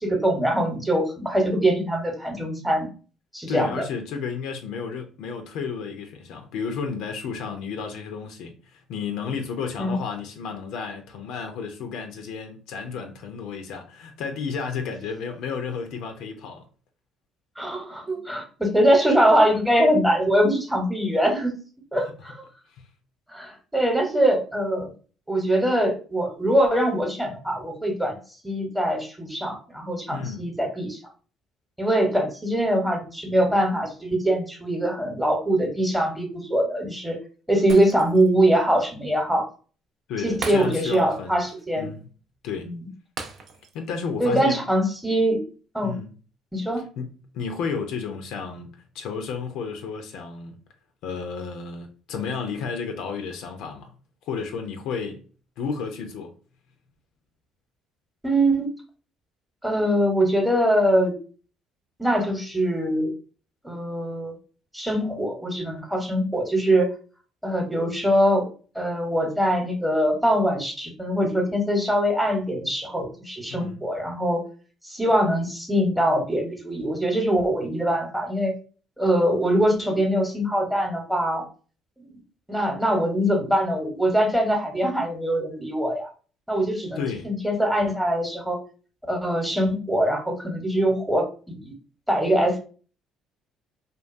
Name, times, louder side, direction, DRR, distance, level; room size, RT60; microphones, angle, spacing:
voice 1, 0.0-2.9 3.3-3.8 9.8-10.0 17.6-21.5 21.9-22.5 23.3-24.9 25.3-28.2 28.4-31.0 31.8-37.2 37.5-39.5 40.2-41.9 42.6-42.8 44.2-45.4 45.7-46.0 46.5-46.8 58.2-58.7 59.6-61.1 62.0-63.1 63.6-64.3 64.7-66.9 67.4-68.5 68.7-74.4 74.8-78.5 79.0-81.5 82.0-82.1 82.5-86.1 86.5-88.6 89.1-91.7 92.1-92.6, right 1 dB, 5° right, 0.9 m, -23 dB
voice 2, 3.5-16.6 22.0-22.1 22.7-22.8 30.1-30.4 40.1-41.4 41.7-42.1 42.4-42.7 43.7-44.6 45.8-46.1 47.0-50.6 51.0-53.9 54.3-55.2 55.6-56.3 73.5-73.9 87.0-87.3, left 5 dB, 75° left, 0.4 m, -32 dB
Shatter, 37.7-38.4 38.8-38.9 40.4-41.2 41.5-41.6 43.2-43.9 44.2-44.4, right 4 dB, 55° right, 0.4 m, -37 dB
2.6 x 2.3 x 2.4 m
supercardioid pair, 65°, 0 cm